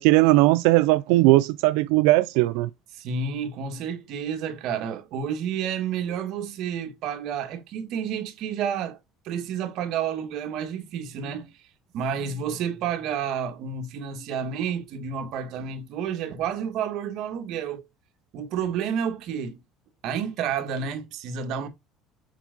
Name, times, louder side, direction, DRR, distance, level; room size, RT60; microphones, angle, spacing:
voice 1, 0.0-2.7, right 19 dB, 90° right, 0.4 m, -18 dB
voice 2, 2.9-9.0 9.2-11.5 11.9-17.8 18.3-19.6 20.0-21.7, right 7 dB, 50° right, 1.5 m, -30 dB
7.5 x 4.5 x 3.9 m
cardioid pair, 170°, 0 cm